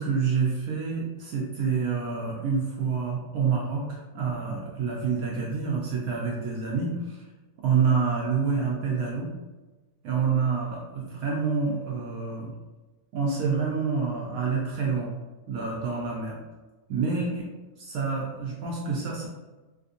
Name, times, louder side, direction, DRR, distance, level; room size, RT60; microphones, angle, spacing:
voice 1, 0.0-7.2 7.6-9.3 10.0-12.5 13.1-15.1 15.5-16.4 16.9-17.5 17.8-19.3, right 5 dB, 70° right, -4 dB, 1.0 m, -27 dB
3.4 x 2.7 x 2.5 m, 1.2 s
omnidirectional pair, 1.8 m